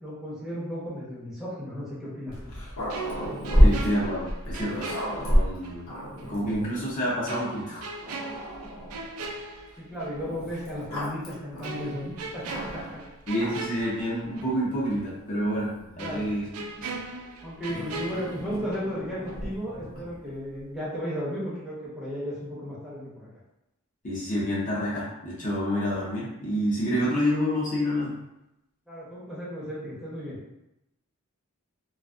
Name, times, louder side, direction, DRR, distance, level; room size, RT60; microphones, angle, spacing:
voice 1, 0.0-2.5 9.8-12.8 16.0-16.3 17.4-23.3 28.9-30.4, equal, ahead, -9 dB, 0.7 m, -34 dB
Growling, 2.3-6.9 7.6-7.7 8.0-9.1 10.2-13.0 13.3-13.8 14.7-16.5 17.7-20.2, equal, 75° left, 0.8 m, -29 dB
sound 1, 2.9-5.8 6.2-6.3 7.3-10.2 10.5-10.7 11.6-14.6 14.9-15.0 16.0-19.0 19.3-19.5, right 3 dB, 80° right, 0.4 m, -39 dB
voice 2, 3.6-5.0 5.3-5.9 6.3-7.8 13.3-16.5 16.8-16.9 24.0-28.1, equal, 35° left, -6 dB, 0.6 m, -28 dB
2.5 x 2.3 x 2.4 m, 0.88 s
head